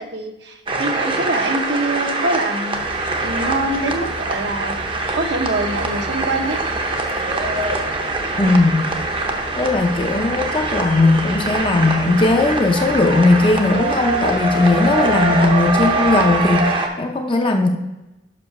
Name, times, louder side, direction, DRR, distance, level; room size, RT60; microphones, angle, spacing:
voice 1, 0.0-4.8 5.1-6.6, right 2 dB, 65° right, 5 dB, 0.9 m, -24 dB
sound 1, 0.7-16.9, right 2 dB, 25° right, 0.7 m, -23 dB
sound 2, 2.7-16.6, left 1 dB, 75° left, 0.9 m, -36 dB
voice 2, 8.4-8.9 9.6-17.7, left 2 dB, 25° left, 4 dB, 0.6 m, -17 dB
5.7 x 5.2 x 5.8 m, 1.0 s
head